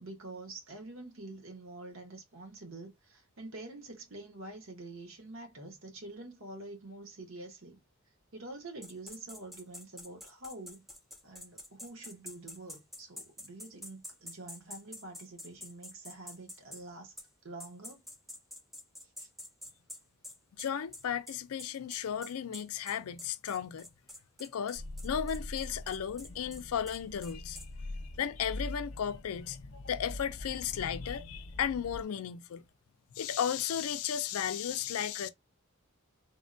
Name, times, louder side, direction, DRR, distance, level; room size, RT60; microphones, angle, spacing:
voice 1, 0.0-7.8 8.3-10.8 11.2-17.1 17.4-18.0 19.2-19.3, right 2 dB, 60° right, 1.0 m, -47 dB
sound 1, 8.8-16.8 17.2-17.3 17.6-27.7, left 1 dB, ahead, 0.4 m, -47 dB
voice 2, 20.5-23.9 24.4-27.9 28.2-32.6 33.2-35.3, left 8 dB, 75° left, 0.4 m, -35 dB
sound 2, 24.8-32.0, left 1 dB, 55° left, 0.8 m, -43 dB
3.5 x 2.2 x 2.5 m
head